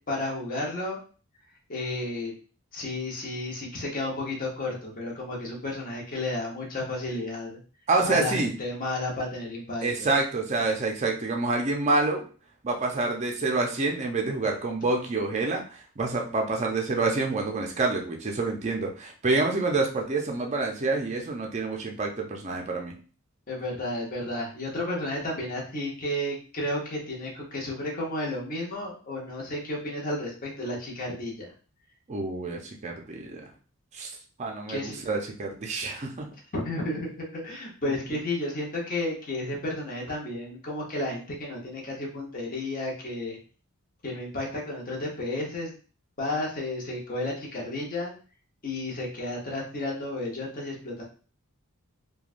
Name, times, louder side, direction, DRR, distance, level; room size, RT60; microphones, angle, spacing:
voice 1, 0.1-1.0 1.7-2.3 2.7-7.6 8.0-10.1 23.5-31.5 34.7-35.0 36.5-43.4 44.0-45.7 46.2-48.1 48.6-51.0, left 1 dB, 40° left, -2 dB, 0.8 m, -32 dB
voice 2, 7.9-8.5 9.8-12.2 12.6-15.6 16.0-22.9 32.1-33.4 33.9-34.1 34.4-36.3, right 3 dB, 30° right, 1 dB, 0.4 m, -27 dB
3.1 x 2.2 x 2.4 m, 0.39 s
head